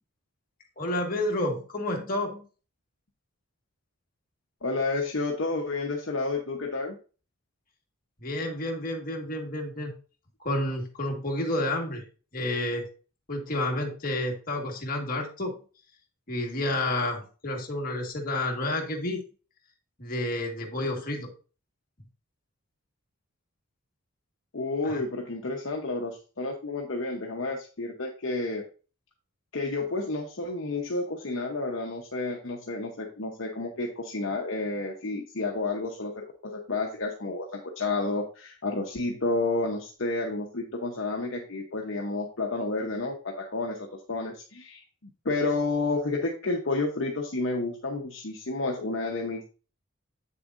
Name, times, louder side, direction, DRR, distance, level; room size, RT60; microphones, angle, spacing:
voice 1, 0.8-2.4 8.2-9.9 10.4-12.0 12.3-12.9 13.3-15.6 16.3-19.2 20.0-21.3 24.8-25.0, left 1 dB, 40° left, 0 dB, 1.7 m, -30 dB
voice 2, 4.6-7.0 24.5-28.6 29.5-44.8 45.2-49.5, left 3 dB, 55° left, 0 dB, 0.9 m, -30 dB
8.3 x 6.7 x 2.6 m, 0.36 s
head